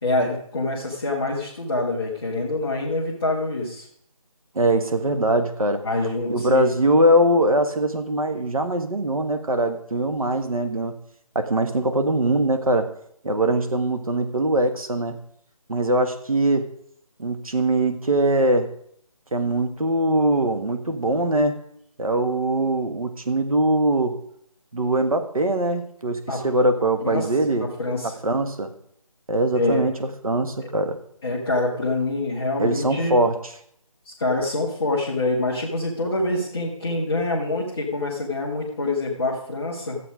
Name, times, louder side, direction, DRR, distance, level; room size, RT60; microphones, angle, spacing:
voice 1, 0.0-3.9 5.8-6.8 26.3-26.4 27.0-27.3 27.6-28.2 29.5-29.8 31.2-33.1 34.0-40.0, left 2 dB, ahead, -12 dB, 0.5 m, -25 dB
voice 2, 4.5-5.8 6.3-10.9 11.3-12.9 13.2-15.2 15.7-16.7 17.2-18.7 19.3-21.6 22.0-24.2 24.7-27.7 28.0-28.7 29.3-31.0 32.6-33.4, right 1 dB, 70° right, 7 dB, 1.7 m, -22 dB
13.0 x 8.1 x 4.9 m, 0.69 s
figure-of-eight pair, 165°, 19 cm